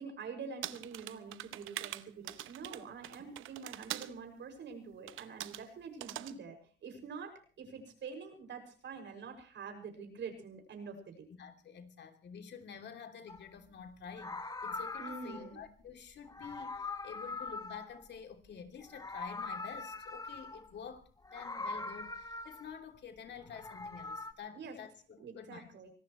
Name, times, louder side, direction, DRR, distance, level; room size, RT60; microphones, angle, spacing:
voice 1, 0.0-11.3 15.0-15.6 24.5-24.8 25.2-25.9, right 5 dB, 65° right, 5 dB, 6.3 m, -46 dB
sound 1, 0.6-4.1 5.1-5.6 6.0-6.3, right 14 dB, 90° right, 0.9 m, -43 dB
voice 2, 11.4-14.4 14.6-25.7, left 7 dB, 60° left, 6 dB, 3.1 m, -49 dB
Meow, 13.3-13.5 14.1-15.5 16.2-18.5 18.8-20.7 21.2-22.8 23.4-24.3, left 3 dB, 20° left, 1.5 m, -42 dB
25.0 x 18.0 x 3.2 m, 0.40 s
cardioid pair, 90°, 20 cm